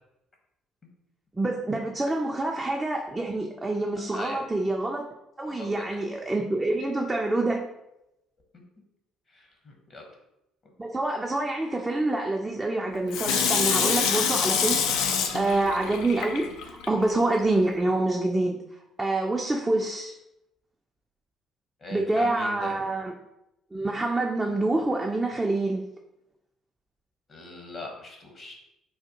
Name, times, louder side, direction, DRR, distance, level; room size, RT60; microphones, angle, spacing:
voice 1, 1.4-5.1 5.4-7.6 10.8-15.1 15.3-18.6 19.0-20.1 21.9-23.1 23.7-25.8, right 2 dB, 15° right, 0 dB, 0.4 m, -26 dB
voice 2, 4.1-4.4 5.4-6.0 9.3-10.1 21.8-22.8 27.3-28.5, left 2 dB, 40° left, 1 dB, 0.9 m, -40 dB
Water tap faucet / Sink (filling or washing), 13.1-16.9 17.4-17.5, left 6 dB, 65° left, 0.3 m, -26 dB
3.4 x 2.2 x 2.8 m, 0.86 s
figure-of-eight pair, 50°, 0 cm